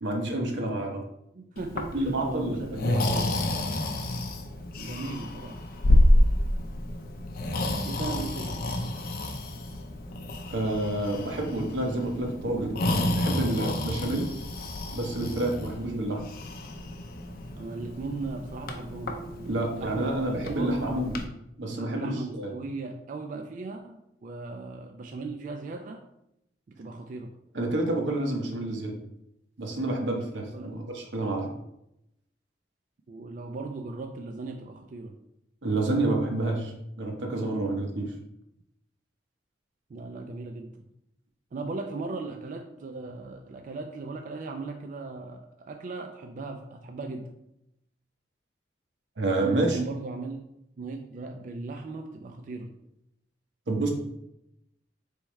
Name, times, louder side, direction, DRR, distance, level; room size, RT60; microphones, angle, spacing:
voice 1, 0.0-1.0 1.9-3.3 10.5-14.3 14.9-16.2 19.5-21.1 21.6-22.5 27.5-29.0 29.6-31.5 35.6-38.1 49.2-49.8 53.7-53.9, right 2 dB, 85° right, 2 dB, 0.9 m, -29 dB
voice 2, 1.3-3.3 4.8-5.6 7.8-8.7 17.5-20.7 21.7-26.1 26.7-27.4 30.5-30.8 33.1-35.2 39.9-40.9 41.5-47.3 49.4-50.5 50.8-52.7, right 3 dB, 45° right, 4 dB, 0.3 m, -38 dB
Breathing, 1.6-21.2, left 1 dB, 55° left, 0.5 m, -29 dB
4.4 x 3.5 x 3.1 m, 0.82 s
head